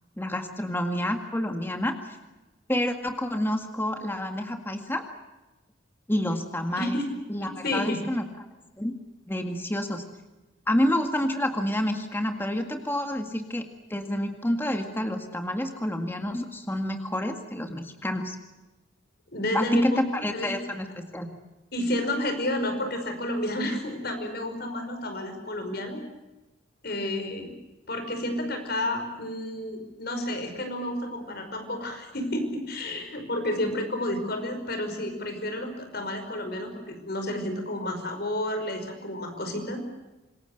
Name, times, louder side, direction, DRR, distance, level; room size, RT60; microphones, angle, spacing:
voice 1, 0.2-2.2 2.7-5.0 6.1-7.0 7.3-8.3 8.8-9.0 9.3-10.0 10.7-13.6 13.9-18.4 19.5-21.3, left 1 dB, 10° left, 5 dB, 2.0 m, -28 dB
voice 2, 7.6-8.0 19.3-20.6 21.7-26.0 26.8-27.5 27.9-39.8, left 1 dB, 50° left, 6 dB, 5.4 m, -30 dB
26.5 x 21.5 x 8.1 m, 1.1 s
head